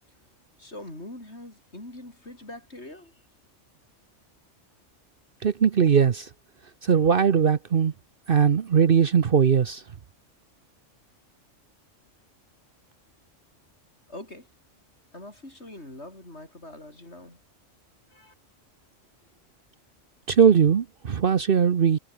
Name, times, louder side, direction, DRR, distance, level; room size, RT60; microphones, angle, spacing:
voice 1, 0.6-3.2 14.1-14.5 15.1-17.4 18.1-18.3, left 1 dB, 60° left, 7.5 m, -43 dB
voice 2, 5.4-6.3 6.8-7.9 8.3-9.8 20.3-22.0, right 7 dB, 50° right, 1.0 m, -20 dB
omnidirectional pair, 1.3 m